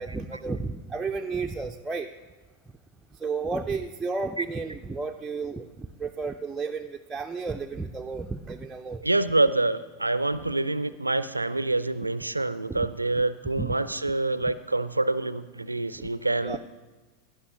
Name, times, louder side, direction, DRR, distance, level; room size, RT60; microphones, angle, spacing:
voice 1, 0.0-2.1 3.2-9.0 12.7-12.9 13.6-13.7 16.0-16.1 16.4-16.6, right 4 dB, 10° right, 3 dB, 0.4 m, -32 dB
voice 2, 9.0-16.6, right 2 dB, 85° right, 16 dB, 0.3 m, -26 dB
17.0 x 11.0 x 2.8 m, 1.3 s
figure-of-eight pair, 90°, 0 cm